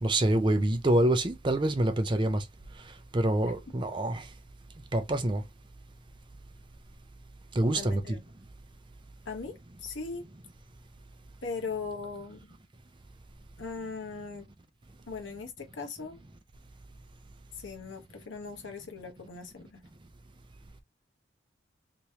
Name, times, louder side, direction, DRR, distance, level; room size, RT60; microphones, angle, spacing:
voice 1, 0.0-2.4 3.1-4.2 4.9-5.4 7.6-8.0, right 1 dB, 25° right, 0.5 m, -26 dB
voice 2, 7.7-8.2 9.3-10.3 11.4-12.4 13.6-14.4 15.1-16.2 17.6-19.9, left 4 dB, 80° left, 1.0 m, -39 dB
3.5 x 3.0 x 2.7 m
head